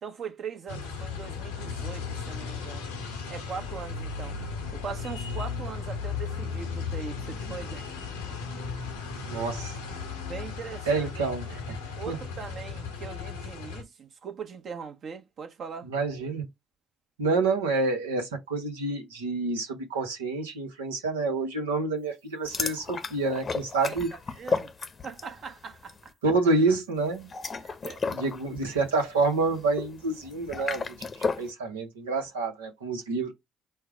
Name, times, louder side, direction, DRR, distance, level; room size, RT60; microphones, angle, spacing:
voice 1, 0.0-2.9 3.3-4.4 4.7-7.8 8.3-8.4 10.2-11.1 12.0-15.9 23.8-24.7 25.0-26.1 27.8-28.0, right 6 dB, 55° right, 1.0 m, -40 dB
sound 1, 0.7-13.8, left 5 dB, 90° left, 0.8 m, -36 dB
voice 2, 9.3-9.7 10.9-11.8 12.1-12.2 15.9-16.5 17.2-24.1 26.2-27.3 28.1-33.3, right 3 dB, 90° right, 0.9 m, -28 dB
sound 2, 22.5-25.4 25.7-26.0 27.1-31.5, left 4 dB, 45° left, 0.7 m, -33 dB
4.6 x 2.1 x 4.7 m
hypercardioid pair, 50°, 0 cm